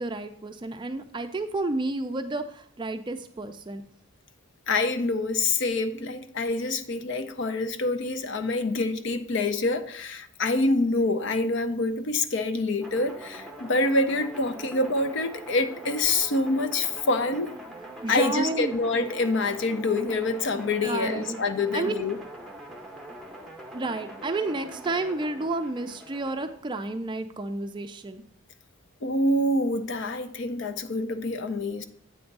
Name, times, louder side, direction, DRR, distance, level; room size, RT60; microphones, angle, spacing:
voice 1, 0.0-3.8 18.0-18.7 20.6-21.4 21.7-22.1 23.7-28.2, right 2 dB, 20° right, 0.4 m, -31 dB
voice 2, 4.7-17.5 18.1-22.2 29.0-31.8, left 2 dB, 55° left, 0.5 m, -26 dB
sound 1, 12.8-26.5, right 1 dB, ahead, 0.7 m, -43 dB
8.5 x 3.5 x 5.3 m
head